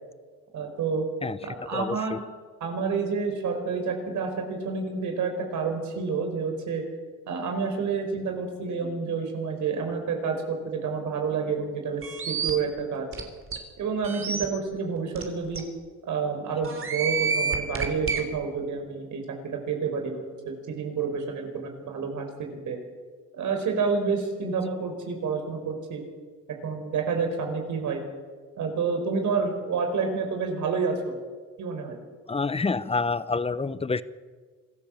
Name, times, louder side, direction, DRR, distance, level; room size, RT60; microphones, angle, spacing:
voice 1, 0.5-1.1 1.4-2.2 2.6-6.8 7.3-13.0 13.8-15.6 16.0-19.4 19.7-22.3 22.6-22.8 23.3-26.0 26.6-28.0 28.6-31.1 31.6-32.0, right 5 dB, 75° right, 4 dB, 5.0 m, -29 dB
voice 2, 1.7-2.2 32.3-34.0, left 4 dB, 20° left, 15 dB, 1.0 m, -27 dB
sound 1, 12.0-12.5 13.1-13.2 13.5-13.6 14.0-14.4 15.2-15.3 15.6-15.7 16.6-18.2, right 5 dB, 45° right, 3.5 m, -28 dB
26.0 x 14.5 x 7.4 m, 1.5 s
cardioid pair, 90°, 30 cm